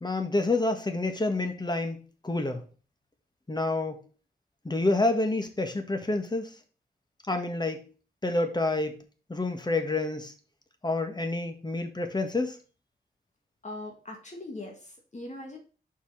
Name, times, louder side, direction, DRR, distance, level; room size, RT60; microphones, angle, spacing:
voice 1, 0.0-2.6 3.5-4.0 4.6-6.5 7.3-7.8 8.2-9.0 9.3-10.3 10.8-12.6, left 2 dB, 25° left, 6 dB, 1.7 m, -28 dB
voice 2, 13.6-15.6, left 2 dB, 45° left, 1 dB, 1.9 m, -41 dB
5.6 x 5.0 x 5.5 m, 0.36 s
cardioid pair, 60°, 17 cm